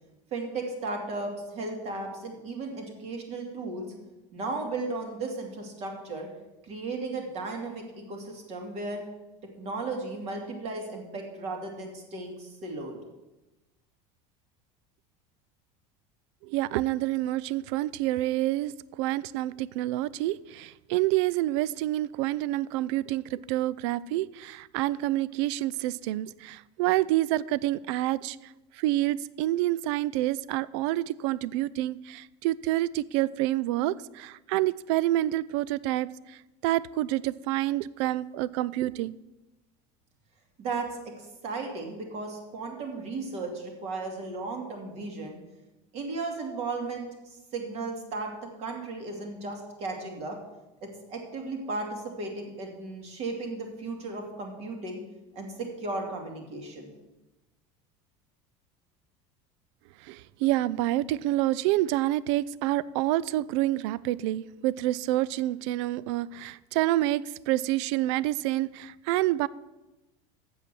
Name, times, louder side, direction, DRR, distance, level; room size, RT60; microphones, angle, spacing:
voice 1, 0.3-3.9 4.3-6.3 6.6-9.0 9.6-13.0 40.6-40.9 41.2-45.4 45.9-48.3 48.6-50.4 50.8-55.0 55.3-56.9, right 3 dB, 45° right, 2.5 m, -35 dB
voice 2, 16.4-39.2 60.0-69.5, right 15 dB, 75° right, 0.4 m, -28 dB
8.2 x 7.2 x 7.6 m
cardioid pair, 145°, 15 cm